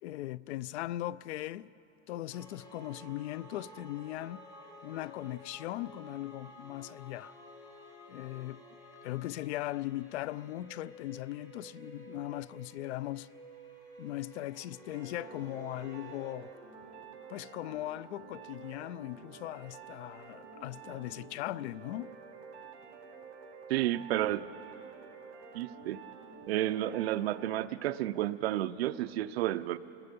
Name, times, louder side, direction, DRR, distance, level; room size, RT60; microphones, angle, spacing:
voice 1, 0.0-1.7 2.1-4.4 4.8-7.3 8.1-8.6 9.0-13.3 14.0-16.5 17.3-22.1, left 15 dB, 85° left, 0.5 m, -39 dB
sound 1, 2.3-16.3, equal, 10° left, 1.4 m, -52 dB
sound 2, 14.9-27.5, right 5 dB, 50° right, 5.1 m, -50 dB
voice 2, 23.7-24.5 25.5-26.0 26.5-29.8, right 14 dB, 70° right, 0.7 m, -31 dB
26.5 x 19.0 x 5.3 m
supercardioid pair, 175°, 32 cm